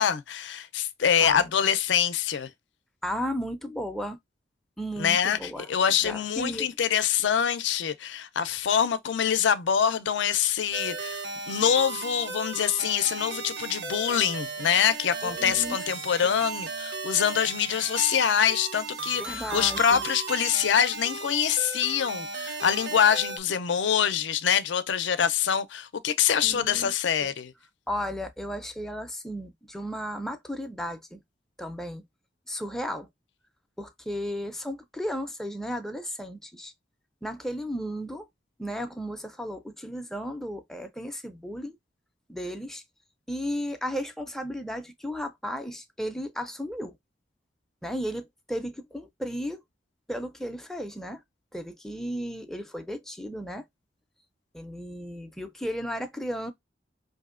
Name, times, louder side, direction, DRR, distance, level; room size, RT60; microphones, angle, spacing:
voice 1, 0.0-2.5 5.0-27.5, left 8 dB, 80° left, 0.5 m, -25 dB
voice 2, 3.0-4.2 4.8-5.7 6.0-6.7 15.2-16.3 19.2-20.0 26.4-26.9 27.2-27.3 27.9-31.2 31.6-32.0 32.5-33.1 33.8-36.7 37.2-38.3 38.6-41.8 42.3-42.8 43.3-46.9 47.8-49.6 50.1-51.2 51.5-53.6 54.5-56.5, equal, ahead, 0.4 m, -34 dB
sound 1, 10.7-23.4, right 4 dB, 70° right, 0.6 m, -36 dB
4.8 x 2.6 x 2.4 m
head